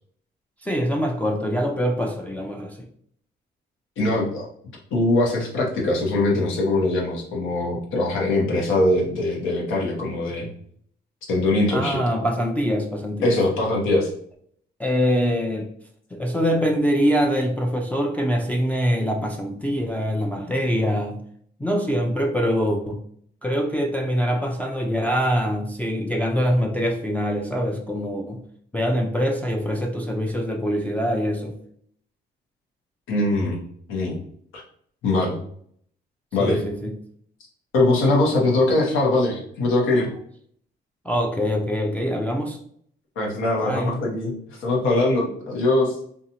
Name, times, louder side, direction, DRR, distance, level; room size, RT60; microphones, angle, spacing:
voice 1, 0.6-2.9 11.7-13.3 14.8-15.7 16.1-21.2 21.6-23.0 23.4-28.4 28.7-31.6 36.4-37.0 41.0-42.6 43.6-44.0, equal, 5° left, 0 dB, 0.3 m, -24 dB
voice 2, 4.0-4.5 4.9-10.5 11.3-12.0 13.2-14.1 33.1-33.6 33.9-34.2 34.5-34.6 35.0-35.4 36.3-36.6 37.7-40.1 43.2-44.3 44.6-46.0, left 2 dB, 85° left, -2 dB, 0.9 m, -22 dB
2.6 x 2.3 x 2.7 m, 0.64 s
cardioid pair, 90°, 20 cm